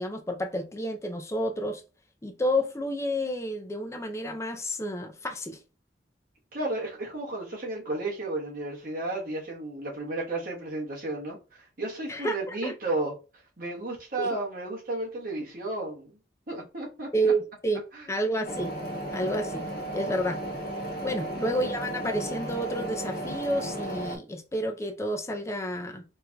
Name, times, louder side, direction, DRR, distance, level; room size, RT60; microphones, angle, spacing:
voice 1, 0.0-1.8 2.2-5.6 12.1-12.7 14.2-14.4 17.1-17.8 18.1-18.7 19.1-19.7 19.9-20.4 21.0-26.0, equal, 15° left, 0.4 m, -30 dB
voice 2, 6.5-13.1 13.6-16.2 16.5-17.1 17.9-18.1 21.2-21.3, right 2 dB, 50° right, 1.2 m, -33 dB
sound 1, 18.4-24.2, right 1 dB, 60° left, 1.0 m, -34 dB
4.3 x 2.6 x 2.2 m
head